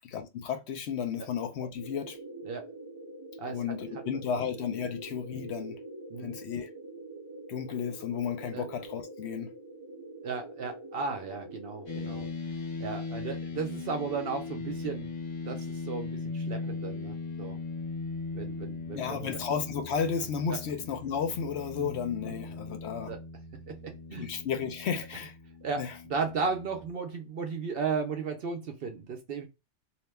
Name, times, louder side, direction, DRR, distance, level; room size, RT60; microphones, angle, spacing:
voice 1, 0.0-2.2 3.5-5.8 6.2-6.7 7.5-9.5 18.9-23.2 24.2-25.3 25.8-26.0, left 7 dB, 65° left, 0.8 m, -33 dB
sound 1, 1.7-12.3, right 2 dB, 35° right, 0.4 m, -45 dB
voice 2, 10.2-12.3 12.8-15.1 15.4-17.6 18.3-19.4 20.5-20.6 21.8-22.0 23.1-23.2 23.7-24.3 25.6-25.8 26.1-29.5, right 5 dB, 60° right, 0.7 m, -35 dB
sound 2, 11.9-26.9, left 4 dB, 85° left, 1.3 m, -39 dB
2.8 x 2.2 x 3.2 m
omnidirectional pair, 1.2 m